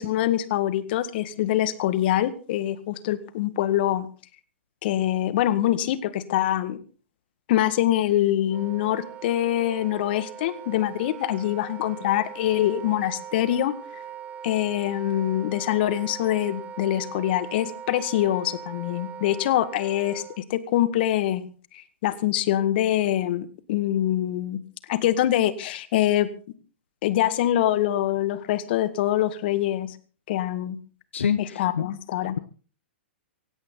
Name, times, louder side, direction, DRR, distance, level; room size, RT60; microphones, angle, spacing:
voice 1, 0.0-4.1 4.8-6.8 7.5-13.7 14.4-24.6 24.9-26.3 27.0-30.0 30.3-30.8 31.4-32.4, left 13 dB, 55° left, 15 dB, 1.8 m, -24 dB
Wind instrument woodwind instrument, 8.4-20.4, right 8 dB, 25° right, 1.8 m, -40 dB
voice 2, 31.1-31.8, left 8 dB, 80° left, 13 dB, 1.0 m, -26 dB
17.0 x 16.5 x 4.0 m, 0.39 s
hypercardioid pair, 120°, 6 cm